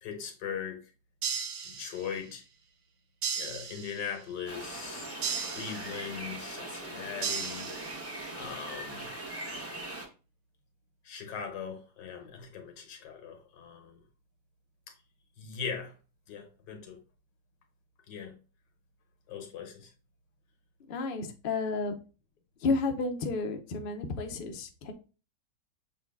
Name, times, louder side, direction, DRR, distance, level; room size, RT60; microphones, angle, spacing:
voice 1, 0.0-0.9 1.6-2.4 3.3-5.1 5.4-7.7 8.3-9.1 11.0-14.0 15.4-16.0 16.3-17.0 18.1-18.4 19.3-19.9, left 7 dB, 85° left, 1.7 m, -40 dB
sound 1, 1.2-2.3 3.2-4.3 5.2-6.3 7.2-8.3, right 6 dB, 75° right, 1.4 m, -36 dB
sound 2, 4.5-10.1, right 1 dB, 15° right, 0.4 m, -41 dB
voice 2, 20.9-21.9 22.6-24.9, left 3 dB, 60° left, 0.5 m, -31 dB
6.7 x 2.3 x 3.5 m
omnidirectional pair, 1.8 m